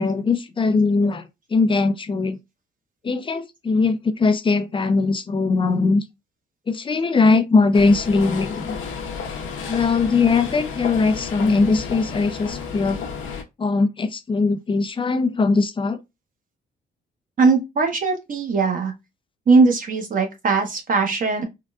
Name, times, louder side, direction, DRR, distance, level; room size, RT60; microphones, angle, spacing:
voice 1, 0.0-2.4 3.0-6.0 6.7-8.8 9.7-13.0 13.6-16.0, left 4 dB, 25° left, 0.5 m, -20 dB
sound 1, 7.7-13.4, left 6 dB, 80° left, 0.7 m, -32 dB
voice 2, 17.4-18.9 19.5-21.4, right 4 dB, 45° right, 1.0 m, -19 dB
3.7 x 2.2 x 2.4 m
cardioid pair, 90°, 20 cm